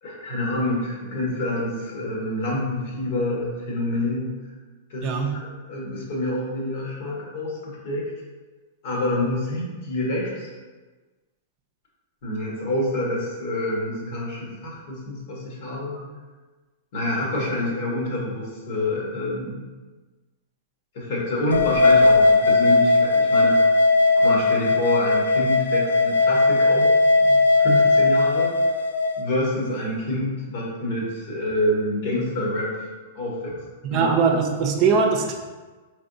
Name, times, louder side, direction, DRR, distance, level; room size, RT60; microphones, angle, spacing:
voice 1, 0.0-4.3 4.9-5.1 5.3-8.0 8.8-10.5 12.2-15.9 16.9-19.6 20.9-23.6 24.1-26.9 27.2-28.5 29.2-32.9 33.1-33.6 33.9-34.1, left 1 dB, 60° left, -3 dB, 1.4 m, -27 dB
voice 2, 5.0-5.4 15.9-16.1 33.8-35.3, right 5 dB, 40° right, 2 dB, 0.6 m, -21 dB
sound 1, 21.5-29.2, left 3 dB, 85° left, 0.3 m, -18 dB
4.3 x 3.4 x 2.7 m, 1.3 s
hypercardioid pair, 115°, 0 cm